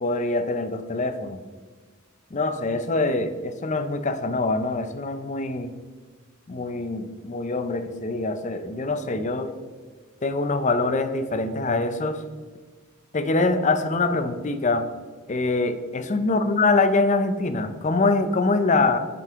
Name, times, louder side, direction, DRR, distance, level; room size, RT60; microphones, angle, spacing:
voice 1, 0.0-1.4 2.3-5.7 6.5-9.5 10.2-12.2 13.1-14.9 15.3-19.0, left 3 dB, 35° left, 9 dB, 0.5 m, -24 dB
8.3 x 5.3 x 3.6 m, 1.5 s
head